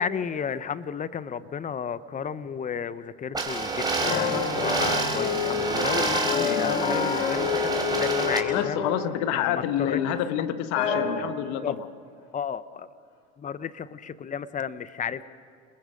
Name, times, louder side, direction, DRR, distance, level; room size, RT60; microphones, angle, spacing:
voice 1, 0.0-8.8 9.3-10.0 11.6-11.7 12.3-12.9 13.4-15.3, left 7 dB, 25° left, 15 dB, 0.9 m, -33 dB
sound 1, 3.3-8.4, right 3 dB, 10° right, 4.5 m, -28 dB
sound 2, 4.0-9.2 9.6-10.2 10.7-11.5, left 6 dB, 80° left, 2.9 m, -28 dB
voice 2, 6.3-6.8 8.5-11.9, left 11 dB, 60° left, 11 dB, 1.3 m, -28 dB
29.0 x 20.5 x 5.1 m, 2.3 s
hypercardioid pair, 90°, 32 cm